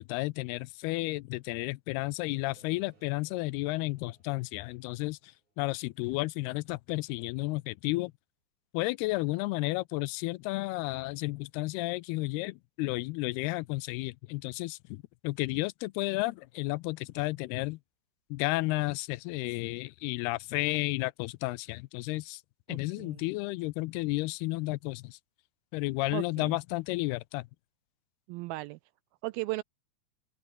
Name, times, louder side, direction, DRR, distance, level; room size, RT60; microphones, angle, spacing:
voice 1, 0.0-8.1 8.7-17.8 18.3-22.4 22.7-25.2 25.7-27.5, left 21 dB, 85° left, 2.5 m, -32 dB
sound 1, 2.3-6.4, right 4 dB, 45° right, 7.9 m, -65 dB
voice 2, 22.7-23.2 26.1-26.6 28.3-28.8 29.2-29.6, right 20 dB, 85° right, 2.1 m, -36 dB
open air
omnidirectional pair, 4.7 m